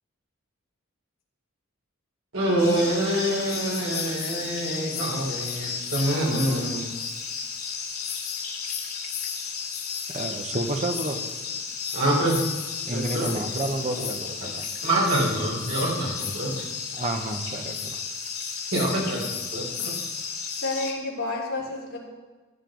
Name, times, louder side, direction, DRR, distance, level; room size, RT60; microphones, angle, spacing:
voice 1, 2.3-6.8 11.9-12.4 12.9-13.3 14.8-16.5 18.7-19.2 19.5-19.9, right 1 dB, 65° right, -4 dB, 4.3 m, -25 dB
sound 1, 2.6-20.9, left 6 dB, 85° left, 2.0 m, -33 dB
voice 2, 10.1-11.2 12.8-14.6 16.9-18.0 19.2-19.3, right 2 dB, 35° right, 4 dB, 1.0 m, -30 dB
voice 3, 20.5-22.0, left 2 dB, 65° left, -4 dB, 3.4 m, -30 dB
15.0 x 9.0 x 3.9 m, 1.3 s
head